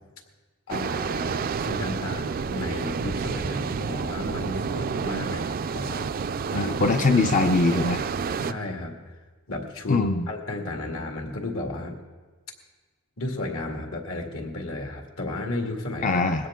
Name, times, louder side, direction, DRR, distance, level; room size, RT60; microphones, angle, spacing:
voice 1, 0.7-6.1 6.5-7.0 8.4-9.0 9.5-12.0 13.2-16.2, left 2 dB, 75° left, 2 dB, 2.2 m, -33 dB
sound 1, 0.7-8.5, right 5 dB, 45° right, 0.4 m, -29 dB
voice 2, 6.5-8.0 9.9-10.3 16.0-16.4, left 3 dB, 35° left, 6 dB, 0.5 m, -22 dB
20.0 x 16.5 x 3.7 m, 1.3 s
head